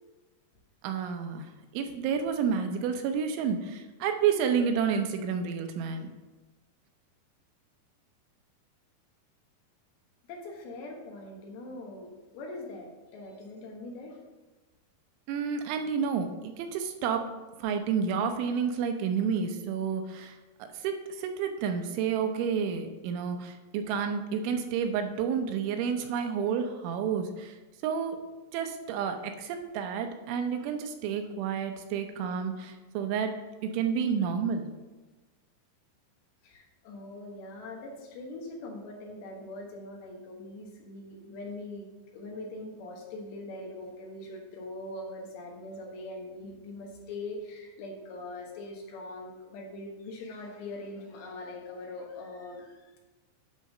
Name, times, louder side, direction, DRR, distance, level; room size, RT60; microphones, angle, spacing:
voice 1, 0.8-6.1 15.3-17.3 17.6-27.6 27.8-28.2 28.5-33.3 33.6-34.7, right 7 dB, 85° right, 5 dB, 3.2 m, -30 dB
voice 2, 10.3-14.2 36.4-41.9 42.1-53.0, left 2 dB, 70° left, 0 dB, 3.3 m, -42 dB
10.5 x 3.8 x 5.4 m, 1.2 s
omnidirectional pair, 5.3 m